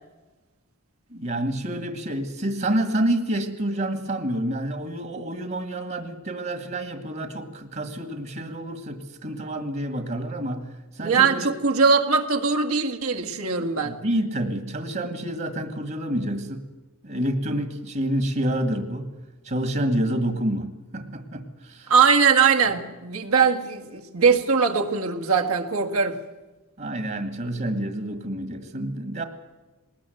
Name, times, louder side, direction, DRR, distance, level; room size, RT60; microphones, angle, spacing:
voice 1, 1.1-11.5 13.8-16.7 17.0-19.1 19.4-21.9 26.8-29.2, right 1 dB, 45° right, 8 dB, 1.7 m, -28 dB
voice 2, 11.0-13.9 21.9-26.2, right 5 dB, 80° right, 4 dB, 1.9 m, -21 dB
20.0 x 20.0 x 7.8 m, 1.2 s
head